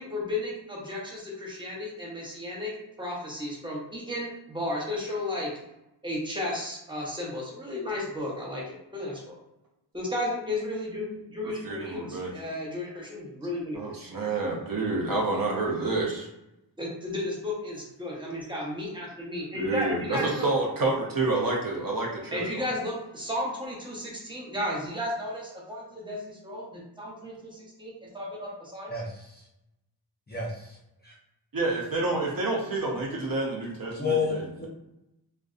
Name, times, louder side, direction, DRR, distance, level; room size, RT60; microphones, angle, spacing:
voice 1, 0.0-5.5 6.0-9.4 9.9-13.9 16.8-20.5 22.3-28.9, left 1 dB, 10° right, -4 dB, 0.8 m, -34 dB
voice 2, 11.6-12.3 13.7-16.3 19.5-22.7 31.5-34.7, right 2 dB, 50° right, -2 dB, 0.7 m, -29 dB
voice 3, 28.9-29.4 30.3-30.8 31.0-31.1 34.0-34.7, left 5 dB, 25° left, -5 dB, 0.5 m, -30 dB
2.5 x 2.2 x 2.4 m, 0.89 s
wide cardioid pair, 75°, 42 cm